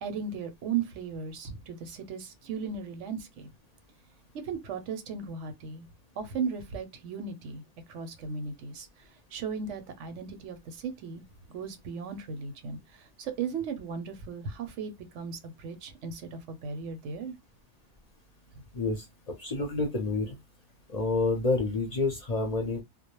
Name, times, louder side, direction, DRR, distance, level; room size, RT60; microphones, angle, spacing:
voice 1, 0.0-3.5 4.3-5.9 6.2-7.6 7.9-17.4, right 5 dB, 90° right, 1.0 m, -36 dB
voice 2, 18.7-20.3 20.9-22.8, left 3 dB, 45° left, 0.6 m, -29 dB
2.3 x 2.0 x 2.9 m
omnidirectional pair, 1.2 m